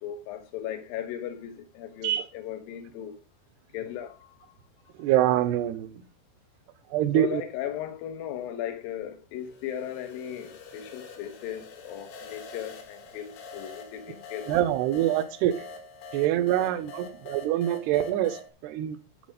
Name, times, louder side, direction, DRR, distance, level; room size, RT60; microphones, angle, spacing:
voice 1, 0.0-3.2 3.7-4.3 7.1-14.6, left 10 dB, 70° left, 2.2 m, -37 dB
voice 2, 5.0-6.0 6.9-7.4 14.4-15.7 16.1-19.0, right 12 dB, 75° right, 2.5 m, -25 dB
sound 1, 9.4-18.5, left 4 dB, 90° left, 4.7 m, -45 dB
12.0 x 6.5 x 5.0 m
omnidirectional pair, 5.6 m